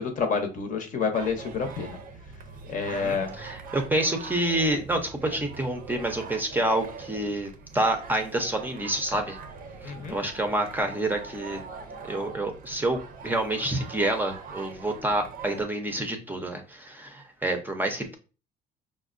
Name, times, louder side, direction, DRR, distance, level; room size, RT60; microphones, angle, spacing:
voice 1, 0.0-2.0 2.7-3.3 9.8-10.2, left 5 dB, 50° left, 5 dB, 0.7 m, -28 dB
sound 1, 1.1-15.6, right 5 dB, 55° right, 0.5 m, -43 dB
voice 2, 2.9-9.4 9.8-11.6 12.0-18.2, right 1 dB, 10° right, 4 dB, 0.6 m, -28 dB
5.0 x 2.1 x 2.5 m, 0.34 s
cardioid pair, 110°, 17 cm